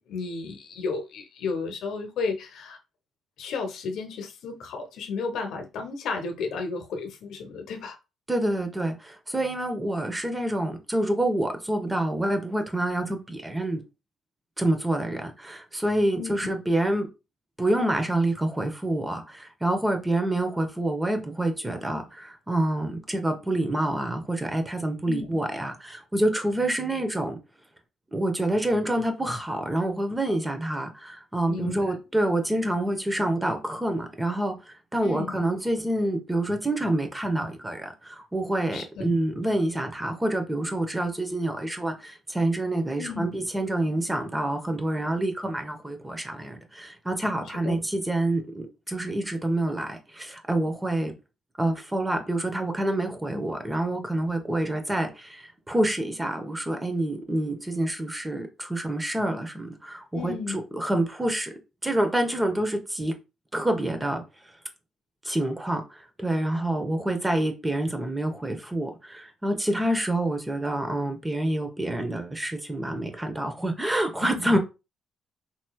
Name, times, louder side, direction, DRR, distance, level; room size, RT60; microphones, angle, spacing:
voice 1, 0.0-2.8 3.4-8.0 16.2-16.5 25.1-25.3 31.5-31.9 35.0-35.3 38.7-39.0 43.0-43.4 47.6-47.8 60.1-60.6 74.2-74.5, left 4 dB, 75° left, 0.8 m, -33 dB
voice 2, 8.3-13.8 14.6-17.1 17.6-27.4 28.1-34.6 34.9-51.1 51.6-61.5 61.8-63.1 63.5-64.2 65.2-74.6, right 1 dB, 15° right, 0.9 m, -27 dB
4.3 x 3.0 x 2.3 m
cardioid pair, 90°, 0 cm